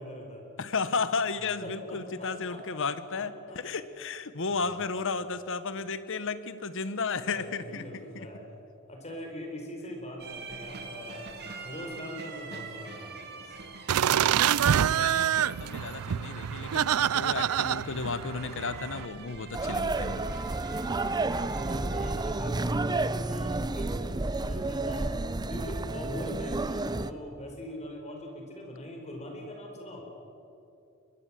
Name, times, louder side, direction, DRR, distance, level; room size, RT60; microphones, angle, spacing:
voice 1, 0.0-0.4 1.6-2.9 3.1-3.6 4.5-5.0 7.3-8.4 8.9-11.3 11.6-13.6 16.7-17.2 21.6-25.2 25.5-30.0, left 1 dB, 30° left, 2 dB, 4.8 m, -42 dB
voice 2, 0.6-3.3 3.6-8.3 14.9-20.4, left 4 dB, 60° left, 13 dB, 1.2 m, -33 dB
sound 1, 10.2-22.3, right 3 dB, 50° right, 2.6 m, -44 dB
sound 2, 13.9-19.0, right 9 dB, 80° right, 0.4 m, -26 dB
sound 3, 19.5-27.1, right 2 dB, 20° right, 0.6 m, -31 dB
23.5 x 21.5 x 7.7 m, 2.8 s
head